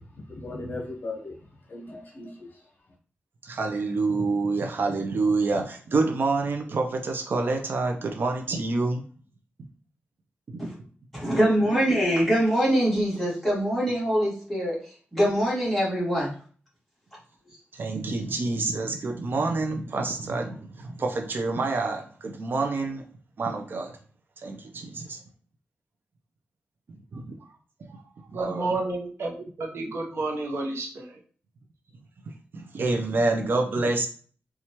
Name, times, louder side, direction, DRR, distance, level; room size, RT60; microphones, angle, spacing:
voice 1, 0.0-1.4 1.7-2.7, left 2 dB, 50° left, 0 dB, 0.9 m, -38 dB
voice 2, 3.4-9.0 10.5-10.6 17.7-23.0 23.4-23.9 24.4-25.2 27.1-27.3 27.8-28.7 32.5-34.1, right 3 dB, 55° right, 3 dB, 0.5 m, -27 dB
voice 3, 11.1-14.8 15.1-16.3, equal, 5° left, -7 dB, 1.7 m, -23 dB
voice 4, 28.3-31.2, right 2 dB, 80° right, -1 dB, 0.9 m, -31 dB
4.2 x 2.3 x 2.9 m, 0.43 s
wide cardioid pair, 155°, 4 cm